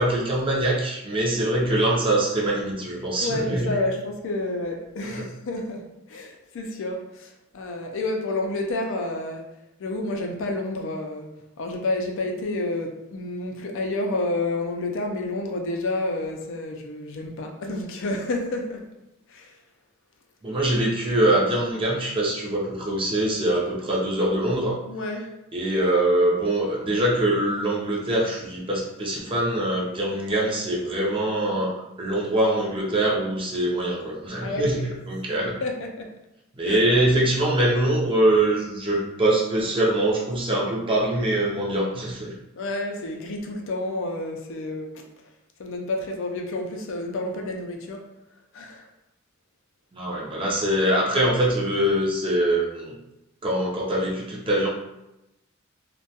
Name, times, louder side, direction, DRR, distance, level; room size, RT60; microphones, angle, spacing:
voice 1, 0.0-3.8 5.1-5.3 20.4-24.8 25.5-31.7 32.0-35.5 36.6-42.4 49.9-53.0 53.4-54.7, right 1 dB, 25° right, -3 dB, 0.5 m, -23 dB
voice 2, 3.2-9.5 9.8-11.3 11.6-18.9 19.3-19.5 24.9-25.4 34.4-34.7 35.6-36.1 36.7-36.8 42.6-45.0 45.6-48.1 48.5-48.9, left 2 dB, 65° left, 2 dB, 0.4 m, -29 dB
2.2 x 2.1 x 2.7 m, 0.91 s
head